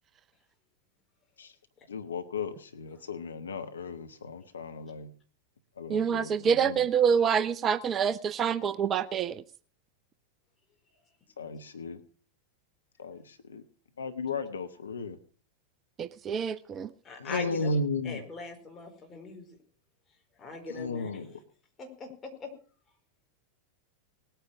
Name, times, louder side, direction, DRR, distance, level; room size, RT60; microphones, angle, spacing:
voice 1, 1.9-5.1 5.8-6.8 11.4-12.0 13.0-13.6 14.0-15.2 17.2-18.2 20.7-21.3, left 3 dB, 70° left, 9 dB, 1.1 m, -35 dB
voice 2, 5.9-9.4 16.0-16.9, right 7 dB, 25° right, 15 dB, 0.6 m, -27 dB
voice 3, 17.0-17.7 18.0-19.6 20.4-21.1 21.8-22.5, left 3 dB, 20° left, 2 dB, 4.7 m, -41 dB
19.0 x 9.2 x 6.2 m, 0.42 s
figure-of-eight pair, 90°, 0 cm